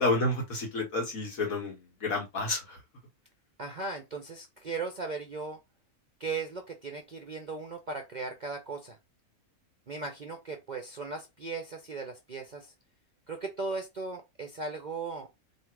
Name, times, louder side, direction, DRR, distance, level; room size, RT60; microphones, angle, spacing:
voice 1, 0.0-2.8, left 2 dB, 70° left, 2.0 m, -30 dB
voice 2, 3.6-5.6 6.2-9.0 9.9-12.7 13.3-15.3, right 3 dB, 45° right, 0.5 m, -37 dB
3.7 x 2.6 x 4.5 m
omnidirectional pair, 1.5 m